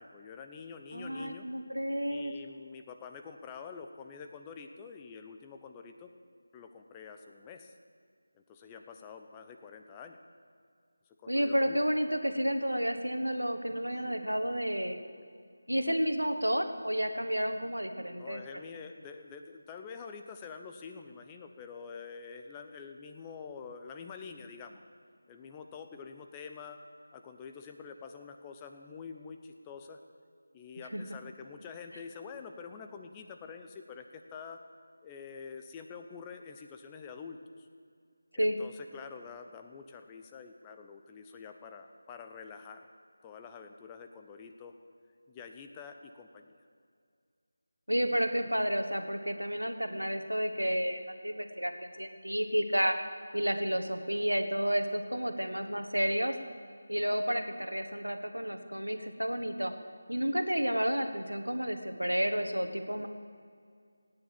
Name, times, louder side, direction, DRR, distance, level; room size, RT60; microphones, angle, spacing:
voice 1, 0.0-1.5 2.1-6.1 6.5-7.7 8.3-10.2 11.2-11.8 14.1-14.3 15.1-15.3 18.0-24.8 25.3-26.8 27.1-30.0 30.5-34.6 35.0-37.7 38.3-42.9 43.2-44.7 45.3-46.6, left 5 dB, 15° left, 5 dB, 0.8 m, -47 dB
voice 2, 0.9-2.3 11.3-15.0 15.7-18.4 30.9-31.0 38.4-38.6 47.9-53.0 53.3-56.4 56.9-59.7 60.1-63.1, equal, 85° right, 7 dB, 1.6 m, -31 dB
17.5 x 9.7 x 7.6 m, 2.2 s
figure-of-eight pair, 160°, 0 cm